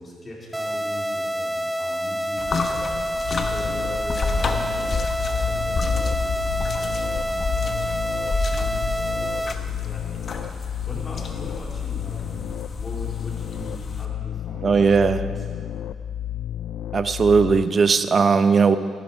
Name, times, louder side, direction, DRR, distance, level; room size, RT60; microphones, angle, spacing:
voice 1, 0.0-10.5 10.9-15.7, equal, 30° left, -3 dB, 3.9 m, -41 dB
sound 1, 0.5-9.5, equal, 10° right, 0.5 m, -27 dB
sound 2, 2.4-14.1, left 3 dB, 45° left, 1.2 m, -30 dB
sound 3, 3.2-17.7, left 10 dB, 70° left, 0.4 m, -32 dB
voice 2, 14.6-15.2 16.9-18.8, right 5 dB, 40° right, 11 dB, 0.8 m, -18 dB
14.0 x 11.5 x 5.7 m, 2.1 s
cardioid pair, 90°, 0 cm